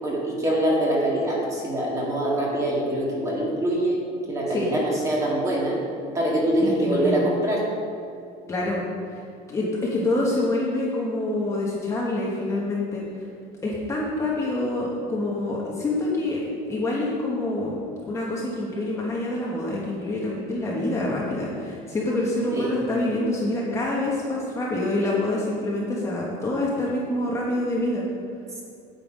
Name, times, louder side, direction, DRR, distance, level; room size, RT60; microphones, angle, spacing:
voice 1, 0.0-4.0 4.3-5.8 6.1-7.6 22.5-22.7, right 1 dB, 20° right, -4 dB, 2.0 m, -24 dB
voice 2, 6.6-7.2 8.5-8.8 9.1-9.2 9.5-13.0 13.6-16.4 16.7-28.1, left 2 dB, 15° left, -5 dB, 1.2 m, -26 dB
9.0 x 7.9 x 5.1 m, 2.5 s
cardioid pair, 175°, 17 cm